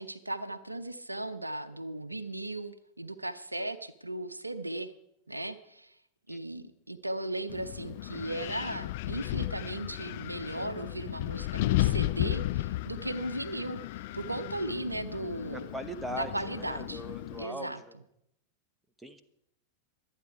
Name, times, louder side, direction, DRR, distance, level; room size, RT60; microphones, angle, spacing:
voice 1, 0.0-4.9 5.3-6.0 6.3-13.8 14.1-15.7 16.1-17.0 17.4-17.8, right 1 dB, 85° right, 13 dB, 0.7 m, -36 dB
Wind, 7.5-17.4, left 16 dB, 50° left, 0.6 m, -34 dB
voice 2, 15.5-17.9 19.0-19.2, right 1 dB, 5° right, 9 dB, 1.1 m, -40 dB
23.5 x 9.0 x 4.8 m, 0.77 s
figure-of-eight pair, 90°, 0 cm